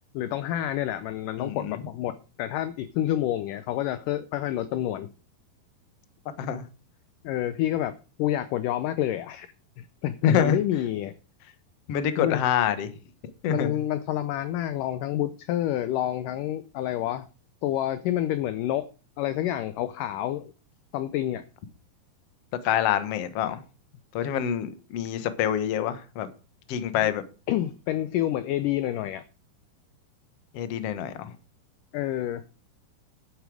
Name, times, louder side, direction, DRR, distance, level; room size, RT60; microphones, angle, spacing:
voice 1, 0.1-5.1 7.2-9.5 9.8-11.1 12.2-12.4 13.5-17.3 17.6-18.9 19.2-20.5 20.9-21.4 27.5-29.2 31.9-32.4, left 12 dB, 85° left, 1.9 m, -28 dB
voice 2, 1.4-1.8 6.4-6.6 10.2-10.6 11.9-12.9 13.4-13.8 22.6-23.6 24.1-26.3 26.7-27.2 30.5-31.3, left 9 dB, 65° left, 1.6 m, -26 dB
11.5 x 8.3 x 6.3 m
omnidirectional pair, 4.6 m